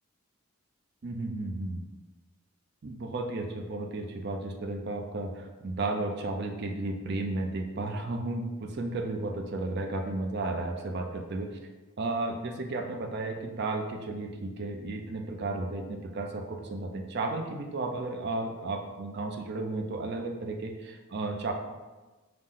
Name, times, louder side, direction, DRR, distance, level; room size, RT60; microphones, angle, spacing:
voice 1, 1.0-1.8 2.8-11.6 12.0-21.5, right 2 dB, 50° right, 4 dB, 0.4 m, -33 dB
5.8 x 2.1 x 3.7 m, 1.2 s
head